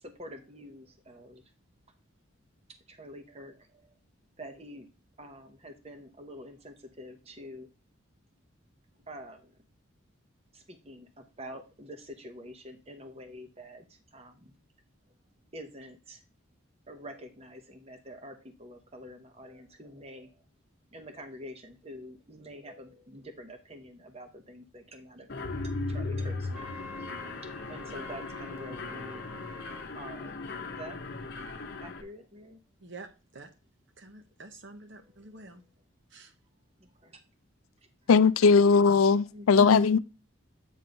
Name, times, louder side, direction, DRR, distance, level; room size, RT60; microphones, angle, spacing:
voice 1, 0.0-1.4 2.9-3.9 4.4-4.9 5.2-7.7 9.1-9.5 10.5-14.5 15.5-16.2 16.9-20.3 20.9-25.3 25.6-26.7 27.0-27.1 27.7-29.2 29.9-30.4 30.8-31.0 31.8-32.6 35.3-35.5 36.8-37.2 38.4-38.6 39.3-39.7, equal, 30° right, 0.9 m, -46 dB
Mechanisms, 25.3-32.0, left 3 dB, 50° left, 0.8 m, -37 dB
Wind instrument woodwind instrument, 26.5-29.9, left 1 dB, 5° right, 0.6 m, -47 dB
voice 2, 32.8-33.5 34.0-35.6 36.1-36.3, right 3 dB, 60° right, 0.9 m, -48 dB
voice 3, 38.1-40.0, left 5 dB, 80° left, 0.4 m, -19 dB
8.3 x 3.0 x 5.2 m
head